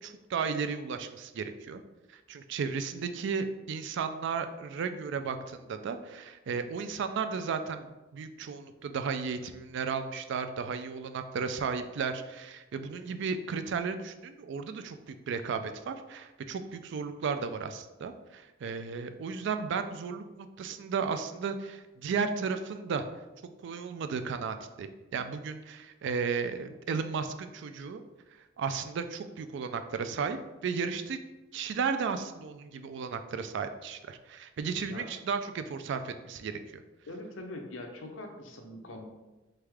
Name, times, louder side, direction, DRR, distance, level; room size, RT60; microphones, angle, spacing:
voice 1, 0.0-1.8 2.1-23.1 23.6-24.9 25.1-28.0 28.6-31.2 31.5-36.8, right 5 dB, 65° right, 9 dB, 0.3 m, -34 dB
voice 2, 37.1-39.0, left 1 dB, 75° left, 3 dB, 0.7 m, -42 dB
3.6 x 3.3 x 3.4 m, 1.1 s
head